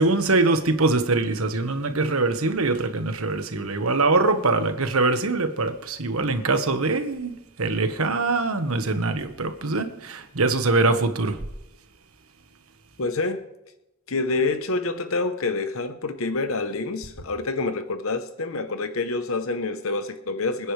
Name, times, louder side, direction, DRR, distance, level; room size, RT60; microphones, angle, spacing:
voice 1, 0.0-11.4, right 3 dB, 90° right, 1.4 m, -23 dB
voice 2, 13.0-13.4 14.1-20.7, left 3 dB, 75° left, 0.9 m, -27 dB
25.5 x 10.0 x 3.3 m
head